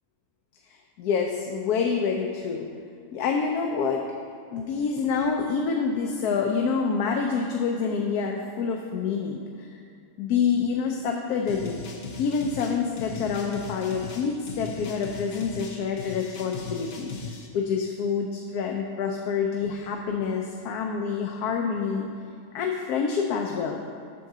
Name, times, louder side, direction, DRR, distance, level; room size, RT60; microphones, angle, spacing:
voice 1, 1.0-2.7 3.1-4.0 4.5-9.8 10.2-11.8 12.2-17.1 17.5-22.1 22.5-23.8, left 5 dB, 85° left, 2 dB, 1.1 m, -27 dB
sound 1, 11.5-17.5, left 4 dB, 50° left, 0.8 m, -38 dB
8.2 x 3.7 x 6.6 m, 2.4 s
omnidirectional pair, 1.6 m